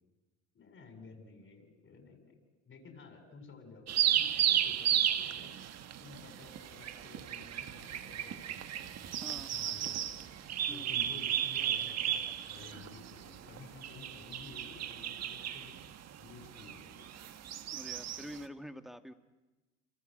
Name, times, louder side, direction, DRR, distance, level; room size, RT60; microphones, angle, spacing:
voice 1, 0.5-2.4 2.6-5.6 6.0-9.1 9.5-10.2 10.7-12.2 12.5-15.8 16.2-17.1, left 4 dB, 35° left, 5 dB, 7.9 m, -53 dB
sound 1, 3.9-18.4, right 10 dB, 50° right, 1.7 m, -34 dB
voice 2, 9.2-9.5 10.7-10.9 17.7-19.1, equal, ahead, 9 dB, 1.9 m, -46 dB
28.5 x 26.0 x 8.0 m, 1.1 s
supercardioid pair, 85°, 34 cm